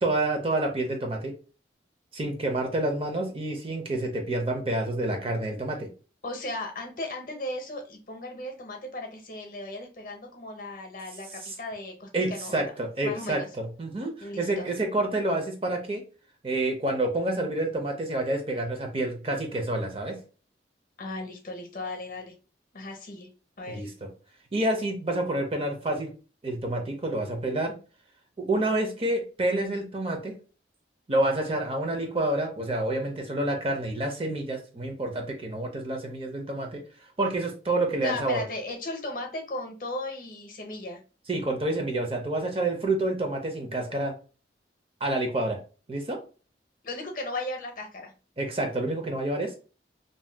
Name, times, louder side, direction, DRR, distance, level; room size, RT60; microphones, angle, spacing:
voice 1, 0.0-1.3 2.1-5.9 11.4-11.5 12.1-16.0 16.4-20.2 23.7-23.9 24.5-26.1 26.4-27.8 28.4-30.4 31.1-36.8 37.2-38.4 41.3-44.2 45.0-45.6 45.9-46.2 48.4-49.6, right 2 dB, 30° right, 3 dB, 0.5 m, -28 dB
voice 2, 6.2-12.7 13.0-13.5 14.2-14.7 21.0-22.3 22.7-23.3 23.6-23.9 38.0-41.0 46.8-48.1, left 2 dB, 50° left, 3 dB, 0.7 m, -36 dB
2.6 x 2.2 x 3.3 m, 0.35 s
head